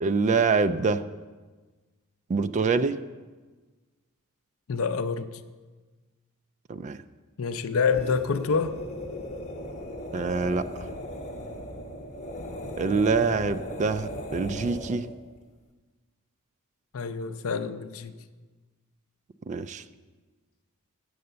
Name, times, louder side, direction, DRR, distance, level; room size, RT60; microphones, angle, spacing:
voice 1, 0.0-1.0 2.3-3.0 6.7-7.0 10.1-10.9 12.8-15.1 19.5-19.8, right 4 dB, 30° right, 13 dB, 0.3 m, -25 dB
voice 2, 4.7-5.3 7.4-8.7 13.0-13.5 16.9-18.2, left 5 dB, 65° left, 10 dB, 0.5 m, -27 dB
sound 1, 7.8-15.2, equal, 30° left, 1.1 m, -37 dB
7.9 x 7.7 x 6.7 m, 1.3 s
head